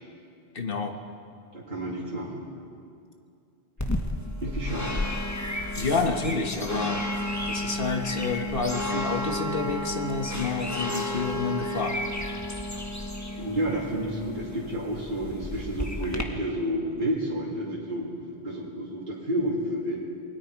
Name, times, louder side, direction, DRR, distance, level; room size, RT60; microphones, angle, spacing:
voice 1, 0.5-0.9 5.8-7.0 7.4-12.0, left 4 dB, 55° left, 4 dB, 1.7 m, -29 dB
voice 2, 1.5-2.4 4.4-5.0 13.4-20.0, right 1 dB, 50° right, -5 dB, 2.8 m, -30 dB
sound 1, 3.8-16.2, left 1 dB, 15° left, 1.4 m, -32 dB
27.5 x 20.5 x 4.7 m, 2.5 s
omnidirectional pair, 1.1 m